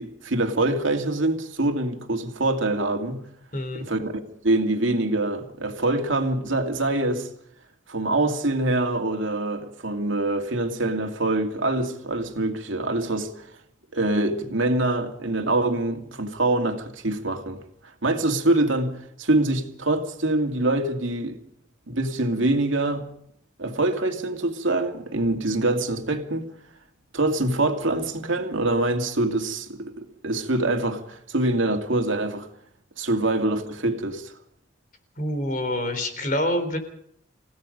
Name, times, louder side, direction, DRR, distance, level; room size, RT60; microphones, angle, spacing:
voice 1, 0.0-3.2 3.7-4.1 4.4-7.3 7.9-13.5 13.9-17.6 18.0-21.4 21.9-23.0 23.6-26.5 27.1-32.5 33.0-34.3, right 2 dB, 90° right, 2.5 m, -24 dB
voice 2, 3.5-3.9 35.2-36.8, left 1 dB, 45° left, 3.9 m, -26 dB
29.5 x 16.5 x 5.3 m
head